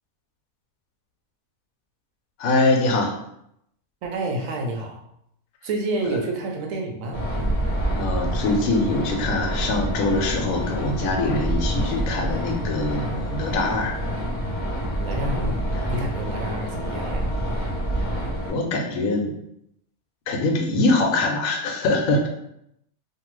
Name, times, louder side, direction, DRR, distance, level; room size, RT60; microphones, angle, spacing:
voice 1, 2.4-3.2 8.0-13.9 15.2-15.8 18.5-19.3 20.3-22.3, left 2 dB, 75° left, 2 dB, 1.0 m, -23 dB
voice 2, 4.0-5.0 5.6-7.2 15.0-15.6 15.9-17.3, right 2 dB, 70° right, 1 dB, 0.9 m, -29 dB
sound 1, 7.1-18.5, right 1 dB, 25° right, 0.8 m, -27 dB
2.7 x 2.3 x 3.0 m, 0.77 s
omnidirectional pair, 1.5 m